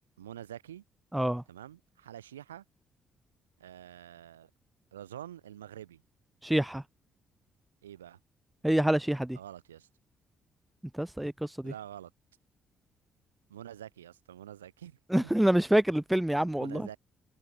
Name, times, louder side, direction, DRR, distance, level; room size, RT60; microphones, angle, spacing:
voice 1, 0.2-0.8 1.5-2.6 3.6-4.5 4.9-6.0 7.8-8.2 9.3-9.9 11.6-12.1 13.5-15.3 16.6-17.0, right 11 dB, 80° right, 4.5 m, -46 dB
voice 2, 1.1-1.4 6.4-6.8 8.6-9.4 10.9-11.7 15.1-16.9, right 1 dB, 5° right, 0.4 m, -27 dB
figure-of-eight pair, 45°, 0 cm